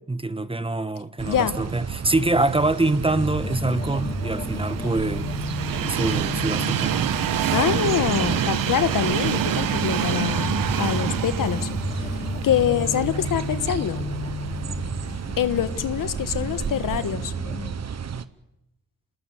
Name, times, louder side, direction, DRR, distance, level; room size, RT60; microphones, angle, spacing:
voice 1, 0.1-5.3 5.9-7.1, right 2 dB, 15° right, 1.2 m, -25 dB
sound 1, 1.2-18.3, right 7 dB, 50° right, 1.2 m, -32 dB
sound 2, 3.1-17.8, left 3 dB, 25° left, 3.3 m, -33 dB
Train, 3.5-13.6 14.1-14.2 15.3-15.4, right 10 dB, 80° right, 1.3 m, -27 dB
voice 2, 7.5-11.7 12.0-12.1 12.4-14.0 15.4-17.3, left 9 dB, 75° left, 1.5 m, -25 dB
27.5 x 19.5 x 8.2 m
cardioid pair, 80°, 33 cm